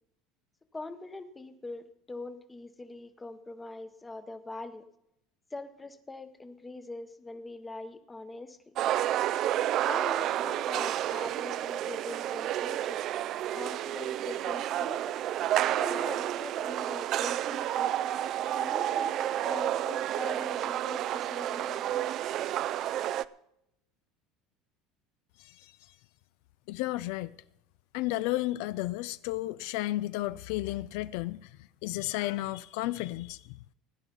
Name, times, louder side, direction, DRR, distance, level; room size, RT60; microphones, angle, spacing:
voice 1, 0.7-4.8 5.5-8.7 9.9-13.0 13.5-15.2 15.8-17.9 18.6-22.0, left 3 dB, 10° left, 0.9 m, -42 dB
sound 1, 8.8-23.2, right 12 dB, 40° right, 0.4 m, -30 dB
voice 2, 25.4-25.7 26.7-27.4 27.9-31.5 31.8-33.4, left 17 dB, 70° left, 0.4 m, -33 dB
16.5 x 9.9 x 5.3 m
cardioid pair, 160°, 0 cm